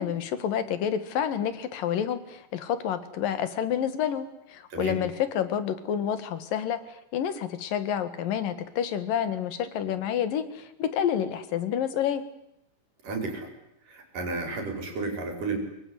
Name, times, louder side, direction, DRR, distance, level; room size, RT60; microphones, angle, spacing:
voice 1, 0.0-12.2, left 9 dB, 90° left, 12 dB, 3.5 m, -29 dB
voice 2, 4.7-5.0 13.0-13.5 13.9-15.6, right 3 dB, 75° right, 5 dB, 6.6 m, -32 dB
25.0 x 21.5 x 9.6 m, 0.81 s
omnidirectional pair, 3.8 m